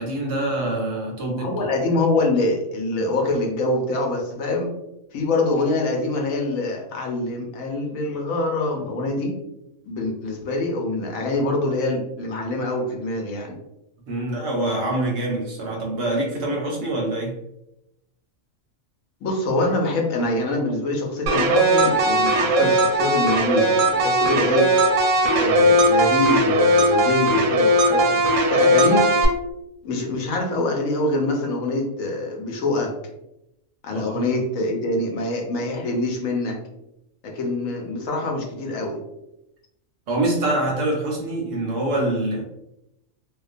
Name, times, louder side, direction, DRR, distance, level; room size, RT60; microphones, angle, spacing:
voice 1, 0.0-1.7 14.1-17.4 33.9-34.2 40.1-42.4, right 1 dB, 65° right, -1 dB, 0.8 m, -25 dB
voice 2, 1.4-4.7 5.1-9.4 9.9-13.6 19.2-24.7 25.4-29.0 29.8-32.9 33.8-36.6 37.2-39.0, left 2 dB, 80° left, 1 dB, 1.0 m, -25 dB
sound 1, 21.3-29.3, right 1 dB, 85° right, 1.0 m, -18 dB
2.4 x 2.1 x 2.4 m, 0.84 s
omnidirectional pair, 1.4 m